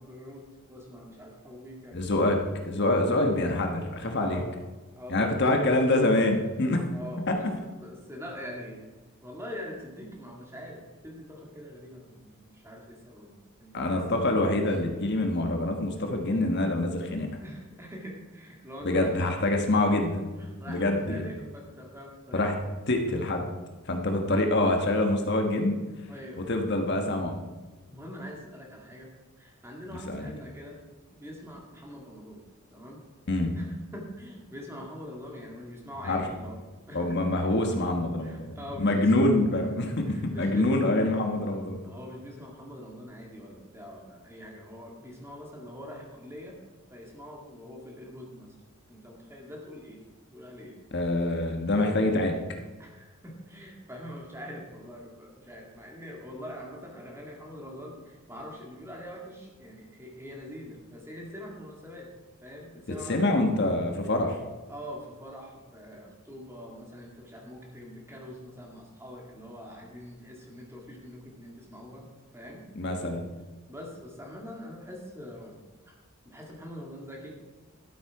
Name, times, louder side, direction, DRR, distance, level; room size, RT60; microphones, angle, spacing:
voice 1, 0.0-2.0 2.9-3.2 4.2-4.5 5.0-5.5 6.9-7.5 7.8-8.9 9.2-14.0 17.4-19.3 20.4-22.5 26.1-26.5 27.9-29.1 29.4-30.8 31.1-32.4 32.7-33.0 33.5-37.5 38.2-39.1 40.1-40.8 41.8-46.6 46.9-48.5 48.9-50.0 50.3-50.8 51.7-52.2 52.8-62.1 62.4-63.4 64.7-72.1 72.3-73.1 73.7-76.0 76.2-77.4, equal, 10° right, -1 dB, 2.2 m, -43 dB
voice 2, 1.9-4.4 5.1-6.8 7.3-7.4 13.7-17.3 18.8-20.3 20.7-21.3 22.3-22.5 22.9-23.5 23.9-25.8 26.4-27.3 30.1-30.3 33.3-33.5 36.0-36.2 36.9-41.8 50.9-52.3 63.1-64.4 72.7-73.3, left 2 dB, 55° left, 3 dB, 1.3 m, -25 dB
12.5 x 8.2 x 4.8 m, 1.2 s
head